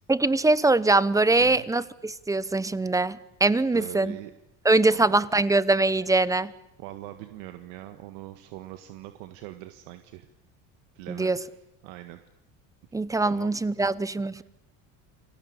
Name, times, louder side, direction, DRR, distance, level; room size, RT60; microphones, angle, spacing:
voice 1, 0.1-4.1 4.6-6.5 11.1-11.4 12.9-14.4, right 2 dB, 10° right, 18 dB, 0.9 m, -23 dB
voice 2, 3.7-4.3 4.9-5.2 6.8-10.3 10.9-11.4 11.8-12.2 13.2-13.5 13.8-13.9 14.3-14.4, right 15 dB, 80° right, 8 dB, 1.8 m, -42 dB
29.0 x 20.0 x 8.8 m, 0.83 s
cardioid pair, 120°, 33 cm